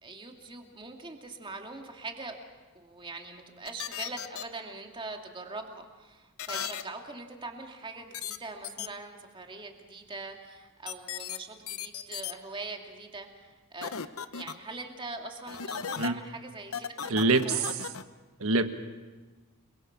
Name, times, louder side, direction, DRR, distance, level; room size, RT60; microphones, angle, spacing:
voice 1, 0.0-2.4 2.7-14.0 14.3-17.6, right 3 dB, 25° right, 3 dB, 2.4 m, -42 dB
sound 1, 3.7-4.4 6.4-6.8 8.1-8.4 8.6-8.9 10.9-11.4 11.7-12.3 13.8-14.5 15.5-16.1 16.7-18.0, left 8 dB, 65° left, 0.9 m, -36 dB
voice 2, 17.1-17.7 18.4-18.6, right 3 dB, 65° right, 8 dB, 1.6 m, -24 dB
30.0 x 22.0 x 6.1 m, 1.3 s
head